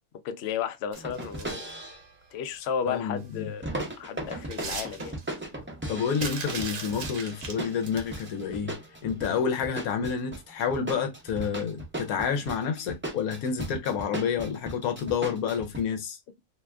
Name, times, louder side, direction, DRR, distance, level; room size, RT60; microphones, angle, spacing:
voice 1, 0.2-1.6 2.3-3.7 4.0-5.1, left 7 dB, 85° left, 0.5 m, -33 dB
sound 1, 0.9-2.1 3.6-15.8, right 1 dB, 15° right, 0.3 m, -37 dB
sound 2, 0.9-1.7 3.3-3.4 3.8-5.4 6.1-8.3 9.3-9.5 9.8-9.9, right 5 dB, 60° right, 1.1 m, -39 dB
voice 2, 2.9-3.5 5.9-8.7 9.0-16.2, left 7 dB, 70° left, 1.0 m, -29 dB
2.8 x 2.3 x 3.3 m
omnidirectional pair, 1.7 m